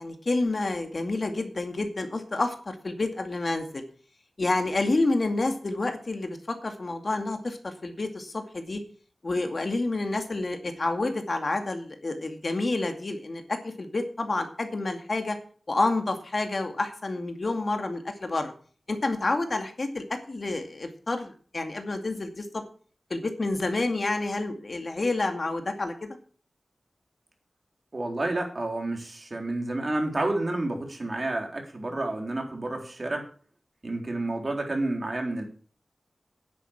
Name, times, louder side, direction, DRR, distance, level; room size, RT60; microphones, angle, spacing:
voice 1, 0.0-3.8 4.4-8.8 9.2-15.4 15.7-18.5 18.9-22.6 23.1-26.2, left 2 dB, 50° left, 5 dB, 2.3 m, -29 dB
voice 2, 27.9-33.3 33.8-35.4, right 2 dB, 45° right, 2 dB, 3.7 m, -30 dB
10.0 x 8.6 x 7.3 m, 0.43 s
wide cardioid pair, 85°, 0 cm